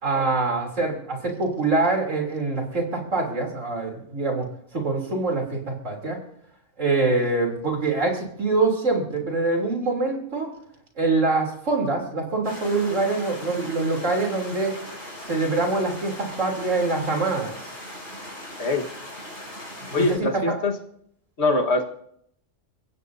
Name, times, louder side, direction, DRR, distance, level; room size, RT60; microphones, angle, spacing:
voice 1, 0.0-6.2 6.8-10.5 11.0-14.7 15.3-17.5 19.8-20.5, right 3 dB, 80° right, 0 dB, 3.7 m, -24 dB
sound 1, 12.4-20.2, left 1 dB, 75° left, 5.4 m, -39 dB
voice 2, 19.9-20.7 21.4-21.8, left 2 dB, 60° left, 3 dB, 1.8 m, -23 dB
30.0 x 16.0 x 2.7 m, 0.72 s
omnidirectional pair, 1.3 m